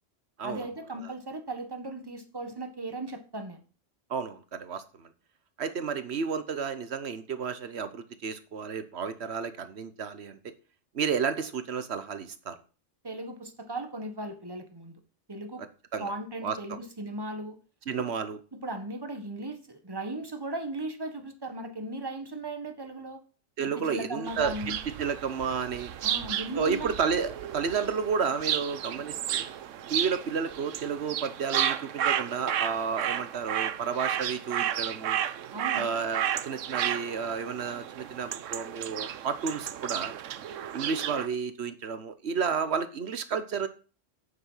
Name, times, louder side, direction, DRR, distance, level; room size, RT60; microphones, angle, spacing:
voice 1, 0.4-3.6 13.0-14.9 15.3-15.6 16.0-17.6 18.0-18.1 18.5-23.2 23.6-24.8 26.0-27.0 35.5-35.9, right 2 dB, 20° right, 7 dB, 1.5 m, -37 dB
voice 2, 4.1-5.1 5.6-10.5 10.9-12.6 15.9-16.1 16.4-16.8 17.9-18.4 23.6-24.7 25.0-25.9 26.5-29.5 29.9-35.2 35.7-40.1 40.7-43.7, right 6 dB, 60° right, 12 dB, 1.3 m, -31 dB
sound 1, 24.3-41.3, right 10 dB, 85° right, 1.1 m, -33 dB
8.9 x 8.1 x 5.7 m, 0.37 s
omnidirectional pair, 1.3 m